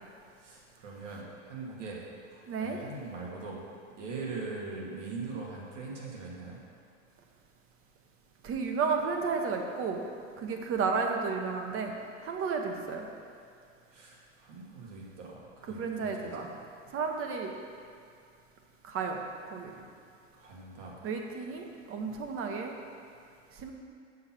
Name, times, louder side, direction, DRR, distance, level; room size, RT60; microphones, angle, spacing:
voice 1, 0.4-2.0 2.3-3.6 4.0-6.6 13.9-16.3 20.4-21.0, right 3 dB, 75° right, -3 dB, 2.2 m, -41 dB
voice 2, 2.5-2.8 8.4-10.0 10.4-11.9 12.2-13.1 15.6-16.5 16.9-17.5 18.8-19.2 19.5-19.9 21.0-22.8 23.5-23.7, right 5 dB, 35° right, 3 dB, 1.1 m, -32 dB
7.3 x 6.0 x 6.0 m, 2.3 s
hypercardioid pair, 105°, 38 cm